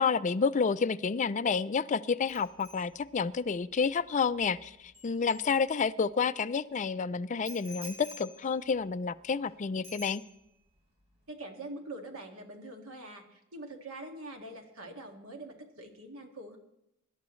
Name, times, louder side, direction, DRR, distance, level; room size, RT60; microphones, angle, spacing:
voice 1, 0.0-10.2, left 5 dB, 35° left, 11 dB, 0.4 m, -29 dB
Bicycle bell, 2.3-6.1 7.4-9.5 9.8-10.7 11.0-11.3, left 1 dB, 30° right, 6.0 m, -51 dB
voice 2, 11.3-16.6, right 2 dB, 75° right, 3 dB, 2.1 m, -44 dB
24.5 x 11.5 x 3.2 m, 0.83 s
head